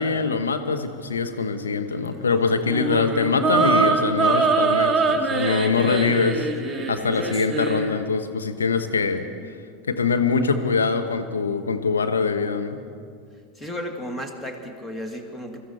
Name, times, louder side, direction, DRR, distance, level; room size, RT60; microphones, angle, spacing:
voice 1, 0.0-9.2 9.9-12.8, left 4 dB, 80° left, 7 dB, 1.0 m, -23 dB
sound 1, 2.7-7.9, right 4 dB, 20° right, 2.0 m, -23 dB
voice 2, 13.6-15.6, equal, 15° left, 4 dB, 1.9 m, -34 dB
22.5 x 13.0 x 4.3 m, 2.2 s
figure-of-eight pair, 80°, 0 cm